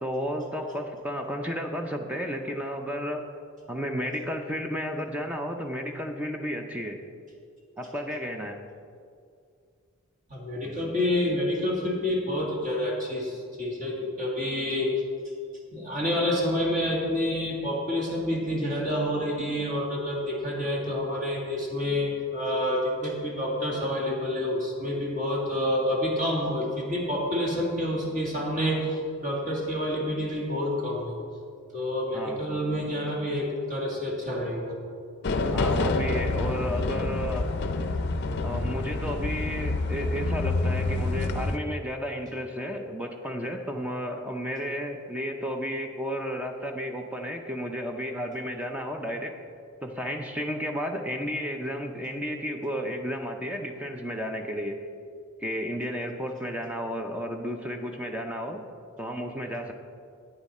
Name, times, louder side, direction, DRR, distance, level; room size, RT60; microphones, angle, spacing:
voice 1, 0.0-3.3 3.7-7.0 7.8-8.6 32.1-32.4 35.5-37.5 38.4-49.3 49.8-54.8 55.4-58.6 59.0-59.7, equal, 5° right, 3 dB, 0.5 m, -32 dB
voice 2, 10.3-15.0 15.7-31.2 31.7-34.8, left 1 dB, 40° right, -3 dB, 2.0 m, -28 dB
sound 1, 35.2-41.6, left 2 dB, 50° left, 0.5 m, -27 dB
11.0 x 9.0 x 4.2 m, 2.3 s
head